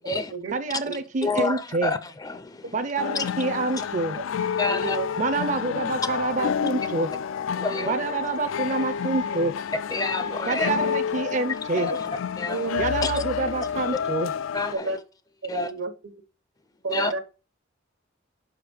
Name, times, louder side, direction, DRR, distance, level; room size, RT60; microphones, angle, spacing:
voice 1, 0.0-0.3 1.2-2.7 3.1-3.2 4.6-5.0 7.6-7.9 9.9-10.7 11.8-12.1 12.4-12.7 13.0-13.2 14.5-15.0 15.5-15.7 16.9-17.1, left 3 dB, 20° left, 0.4 m, -28 dB
voice 2, 0.5-1.9 2.7-4.2 5.2-7.1 7.9-9.6 10.5-11.9 12.8-14.3, right 3 dB, 40° right, 0.5 m, -27 dB
sound 1, 3.0-14.7, left 7 dB, 85° left, 0.3 m, -29 dB
voice 3, 4.7-5.1 7.8-8.0 12.4-12.8 14.7-15.0 15.4-16.1 16.8-17.2, right 4 dB, 80° right, 1.1 m, -31 dB
5.5 x 5.0 x 6.1 m
head